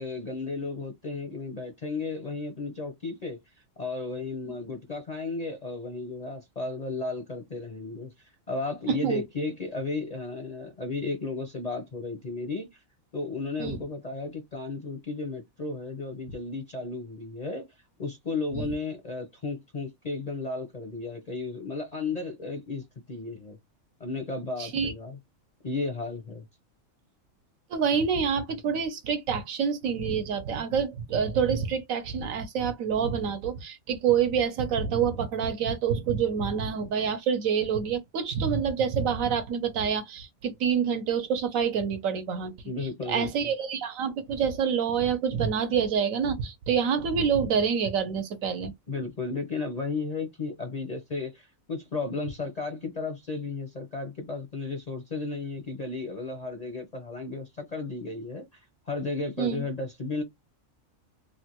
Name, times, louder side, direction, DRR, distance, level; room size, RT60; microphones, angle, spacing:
voice 1, 0.0-3.4 3.8-8.1 8.5-12.8 13.1-17.7 18.0-23.6 24.0-25.2 25.6-26.4 42.7-43.3 48.9-60.2, left 3 dB, 45° left, 0.5 m, -34 dB
voice 2, 8.9-9.2 13.6-13.8 18.5-18.7 24.6-24.9 27.7-42.6 43.0-48.7 59.4-59.6, right 7 dB, 75° right, 1.1 m, -27 dB
3.3 x 2.2 x 2.9 m
omnidirectional pair, 1.4 m